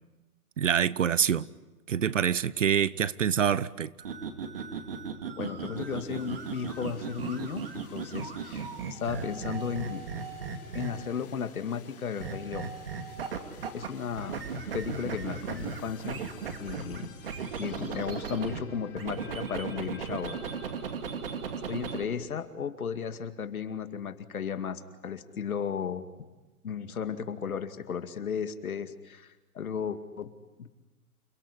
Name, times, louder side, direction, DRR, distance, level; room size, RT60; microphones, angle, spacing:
voice 1, 0.6-1.5 1.9-3.9, right 8 dB, 55° right, 0.9 m, -26 dB
sound 1, 4.0-11.2 12.2-13.9 14.2-18.6 19.0-22.0, right 6 dB, 40° right, 2.5 m, -37 dB
voice 2, 5.4-10.0 10.7-12.7 13.7-14.5 14.7-16.2 16.6-17.1 17.6-20.4 21.7-26.1 26.6-30.3 30.6-30.7, left 7 dB, 70° left, 2.4 m, -35 dB
sound 2, 5.7-20.7, left 7 dB, 40° left, 3.5 m, -53 dB
29.0 x 18.5 x 10.0 m
hypercardioid pair, 180°, 44 cm